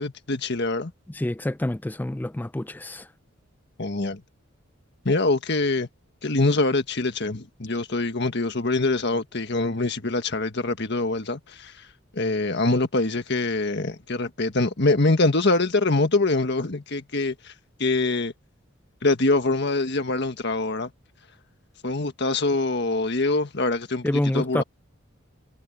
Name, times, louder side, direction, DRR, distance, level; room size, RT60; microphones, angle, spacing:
voice 1, 0.0-0.9 3.8-4.2 5.0-5.9 6.2-11.7 12.1-17.3 17.8-18.3 19.0-20.9 21.8-24.0 24.3-24.6, left 2 dB, 55° left, 1.6 m, -24 dB
voice 2, 1.1-3.1 24.0-24.6, left 1 dB, 10° left, 0.4 m, -27 dB
head